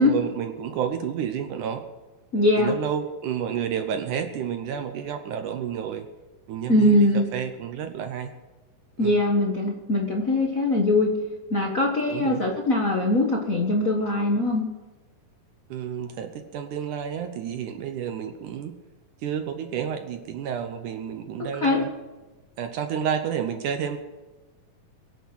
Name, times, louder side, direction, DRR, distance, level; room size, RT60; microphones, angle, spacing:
voice 1, 0.0-1.8 2.6-6.1 6.5-8.3 9.0-9.2 12.1-12.4 15.7-18.7 19.2-21.9 22.6-24.0, right 8 dB, 70° right, 7 dB, 2.1 m, -30 dB
voice 2, 2.3-2.7 6.7-7.3 9.0-11.1 11.5-14.6 21.6-21.8, left 1 dB, 80° left, -1 dB, 0.7 m, -21 dB
23.0 x 8.3 x 6.3 m, 1.2 s
omnidirectional pair, 4.2 m